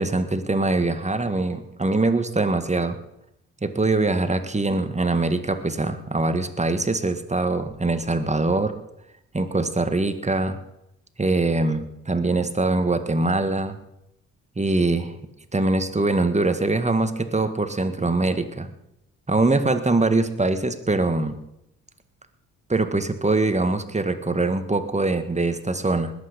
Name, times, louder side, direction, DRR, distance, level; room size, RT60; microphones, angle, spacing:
voice 1, 0.0-3.0 3.6-8.7 9.3-10.6 11.2-13.8 14.6-15.1 15.5-18.7 19.3-21.4 22.7-26.1, right 2 dB, 20° right, 9 dB, 1.7 m, -23 dB
20.0 x 8.6 x 5.2 m, 0.84 s
hypercardioid pair, 45°, 38 cm